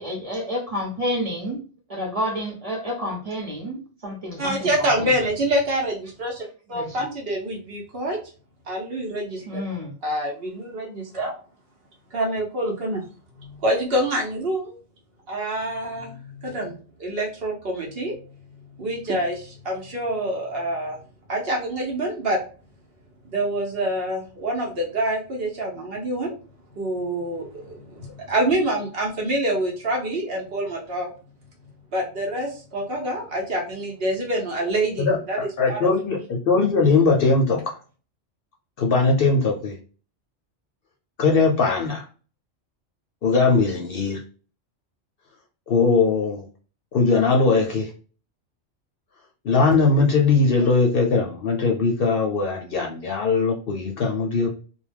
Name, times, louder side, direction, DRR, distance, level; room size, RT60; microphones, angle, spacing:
voice 1, 0.0-1.6 1.9-5.2 6.7-7.0 9.5-9.9, equal, 35° right, -2 dB, 0.9 m, -29 dB
voice 2, 4.4-8.2 8.7-9.6 10.0-11.3 12.1-13.0 13.4-14.8 15.3-18.1 18.8-21.0 21.3-22.4 23.3-26.3 26.7-31.1 31.9-35.9, right 1 dB, 60° right, -1 dB, 0.9 m, -26 dB
voice 3, 35.0-37.6 38.8-39.7 41.2-42.0 43.2-44.2 45.7-46.4 46.9-47.9 49.4-54.5, left 4 dB, 60° left, 1 dB, 0.7 m, -20 dB
2.3 x 2.1 x 3.3 m, 0.37 s
omnidirectional pair, 1.2 m